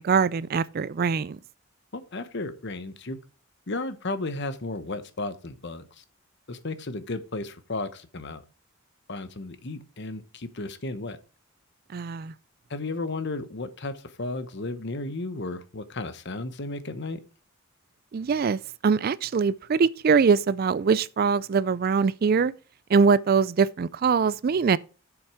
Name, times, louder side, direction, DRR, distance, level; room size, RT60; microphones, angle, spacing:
voice 1, 0.0-1.4 11.9-12.3 18.1-22.5 22.9-24.8, right 5 dB, 45° right, 0.3 m, -23 dB
voice 2, 1.9-3.2 3.7-6.0 6.5-8.4 9.1-11.2 12.7-17.2, left 2 dB, 55° left, 1.0 m, -34 dB
7.7 x 7.3 x 4.8 m
head